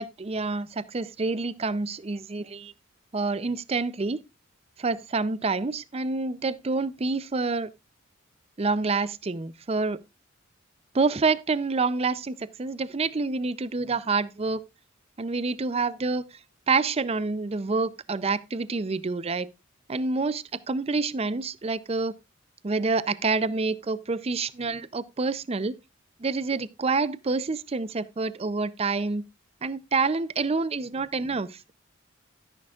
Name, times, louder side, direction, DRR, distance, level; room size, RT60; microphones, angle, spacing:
voice 1, 0.0-2.7 3.1-4.2 4.8-7.7 8.6-10.0 10.9-14.6 15.2-16.3 16.7-19.5 19.9-22.1 22.6-25.7 26.2-29.2 29.6-31.7, right 3 dB, 30° right, 0.5 m, -27 dB
12.0 x 10.5 x 2.4 m
head